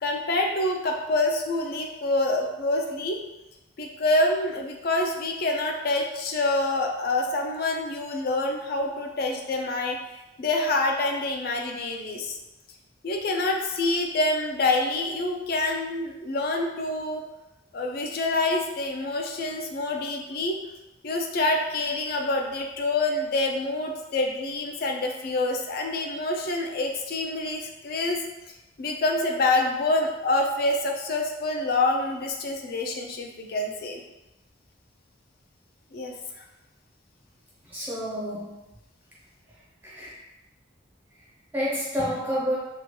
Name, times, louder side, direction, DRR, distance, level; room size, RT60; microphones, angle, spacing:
voice 1, 0.0-3.2 3.8-10.0 10.4-12.4 13.0-17.2 17.7-20.6 21.0-28.2 28.8-34.0 35.9-36.1, left 2 dB, 55° left, 2 dB, 0.4 m, -26 dB
voice 2, 37.6-38.7 39.5-40.2 41.2-42.6, equal, 10° right, -6 dB, 0.5 m, -30 dB
2.9 x 2.2 x 2.8 m, 1.0 s
head